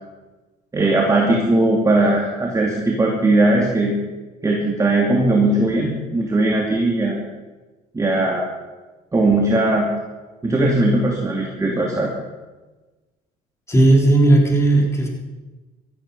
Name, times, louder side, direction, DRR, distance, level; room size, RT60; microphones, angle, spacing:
voice 1, 0.7-3.9 4.4-7.2 7.9-8.4 9.1-9.9 10.4-12.1, right 2 dB, 20° right, -1 dB, 2.6 m, -18 dB
voice 2, 13.7-15.1, right 2 dB, 15° left, -1 dB, 4.1 m, -15 dB
16.5 x 13.5 x 5.6 m, 1.2 s
cardioid pair, 110°, 17 cm